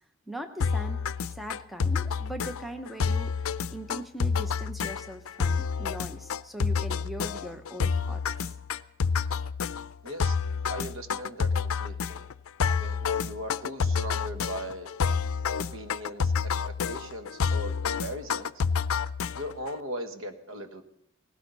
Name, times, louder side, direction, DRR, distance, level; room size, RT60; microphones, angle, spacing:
voice 1, 0.3-8.5, right 1 dB, ahead, 6 dB, 0.9 m, -40 dB
sound 1, 0.6-19.7, left 5 dB, 85° left, 0.5 m, -29 dB
voice 2, 10.0-10.4 10.7-12.2 12.8-14.9 15.6-18.6 19.4-20.8, equal, 70° right, 7 dB, 1.5 m, -39 dB
18.5 x 16.5 x 4.1 m, 0.79 s
head